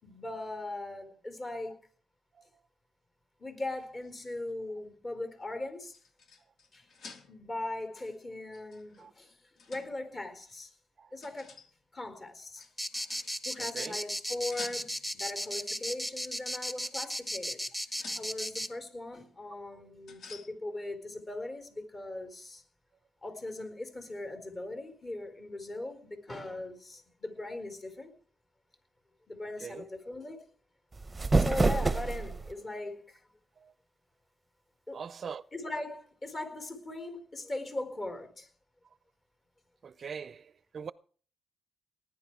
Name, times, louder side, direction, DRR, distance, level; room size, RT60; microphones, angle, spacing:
voice 1, 0.0-1.8 3.4-5.9 6.7-6.9 7.3-10.7 11.1-11.5 11.9-12.7 13.4-17.6 18.1-22.6 23.2-28.1 29.3-30.5 31.3-33.2 34.9-35.0 35.5-38.5, left 2 dB, 30° left, 4.4 m, -39 dB
sound 1, 3.7-5.0 5.5-7.6 8.5-10.1 11.2-11.8 12.6-13.5 14.3-15.2 16.0-16.2 16.8-18.5 20.1-20.6, left 4 dB, 60° left, 3.5 m, -52 dB
sound 2, 12.8-18.7, equal, 5° left, 1.7 m, -35 dB
voice 2, 13.6-14.0 19.7-19.8 29.6-29.9 33.6-33.7 34.9-35.4 39.8-40.9, right 6 dB, 45° right, 0.6 m, -42 dB
sound 3, 30.9-32.5, right 3 dB, 20° right, 0.9 m, -27 dB
19.5 x 10.5 x 4.8 m
cardioid pair, 90°, 0 cm